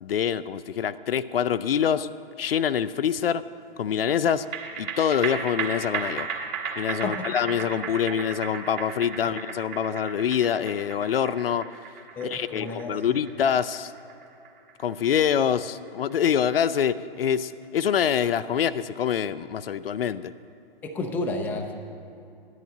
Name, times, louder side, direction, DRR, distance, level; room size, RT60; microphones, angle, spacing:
voice 1, 0.0-2.1 2.4-3.4 3.8-4.5 4.8-6.3 6.8-11.7 12.3-13.9 14.8-20.3, left 8 dB, 75° left, 14 dB, 0.5 m, -25 dB
sound 1, 4.3-16.9 17.3-17.4, right 6 dB, 25° right, 1.2 m, -35 dB
voice 2, 12.2-13.0 20.8-21.7, left 2 dB, 5° left, 3 dB, 0.4 m, -31 dB
13.5 x 10.5 x 3.9 m, 2.7 s
figure-of-eight pair, 125°, 30 cm